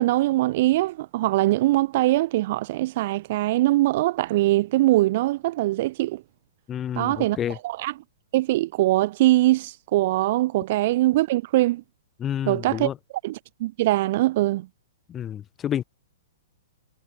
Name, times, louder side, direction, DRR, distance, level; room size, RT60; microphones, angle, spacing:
voice 1, 0.0-6.2 6.9-7.4 7.6-7.9 8.3-11.8 12.5-12.9 13.2-14.7, right 17 dB, 50° right, 3.2 m, -22 dB
voice 2, 6.7-7.6 12.2-13.0 15.1-15.8, left 10 dB, 20° left, 3.4 m, -29 dB
hypercardioid pair, 140°, 0 cm